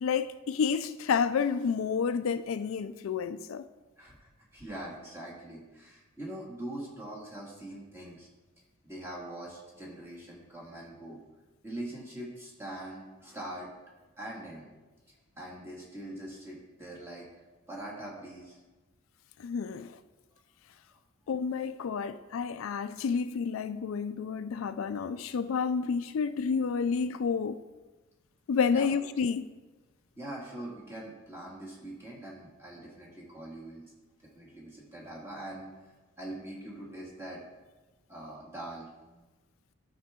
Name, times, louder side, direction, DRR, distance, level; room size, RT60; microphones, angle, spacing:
voice 1, 0.0-3.7 19.4-20.0 21.3-27.6 28.5-29.5, left 6 dB, 80° left, 0.4 m, -30 dB
voice 2, 4.0-8.3 8.8-11.2 11.6-13.7 14.2-14.7 15.1-17.3 17.7-18.6 28.7-28.9 30.2-33.8 34.2-37.4 38.1-39.3, right 1 dB, 10° right, 2.1 m, -43 dB
12.0 x 5.8 x 3.7 m
head